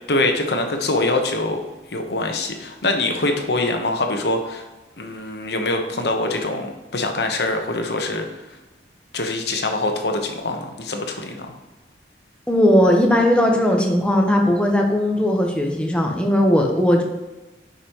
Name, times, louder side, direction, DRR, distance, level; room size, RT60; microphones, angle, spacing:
voice 1, 0.1-1.6 1.9-4.6 5.0-8.3 9.1-11.5, left 2 dB, 65° left, 4 dB, 1.0 m, -24 dB
voice 2, 12.5-17.0, left 1 dB, 5° left, 1 dB, 0.9 m, -18 dB
9.8 x 5.2 x 3.0 m, 1.1 s
head